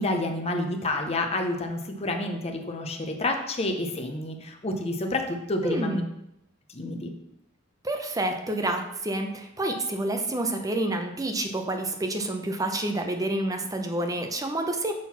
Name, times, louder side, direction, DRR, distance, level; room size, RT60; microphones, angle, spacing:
voice 1, 0.0-6.0 6.7-7.1, left 2 dB, 30° left, 4 dB, 0.9 m, -29 dB
voice 2, 5.6-6.0 7.8-14.9, right 1 dB, 20° right, 4 dB, 0.8 m, -28 dB
6.4 x 3.9 x 5.8 m, 0.82 s
head